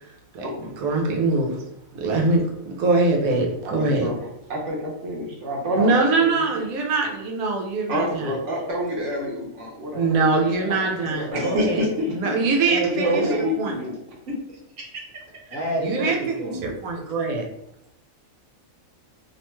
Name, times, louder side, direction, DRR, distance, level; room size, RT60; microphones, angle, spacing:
voice 1, 0.3-1.6 1.9-4.1 5.7-8.3 9.9-11.8 12.1-13.7 15.8-17.5, right 3 dB, 85° right, 1 dB, 1.1 m, -23 dB
voice 2, 3.6-4.2 4.5-5.9 6.2-6.5 7.9-10.8 11.2-12.3 12.8-13.9 14.3-14.4 14.8-15.0, equal, 65° right, -2 dB, 1.0 m, -28 dB
voice 3, 10.5-11.7 12.6-13.4 15.5-16.6, right 2 dB, 50° left, -4 dB, 0.8 m, -29 dB
2.9 x 2.2 x 3.0 m, 0.80 s
omnidirectional pair, 1.4 m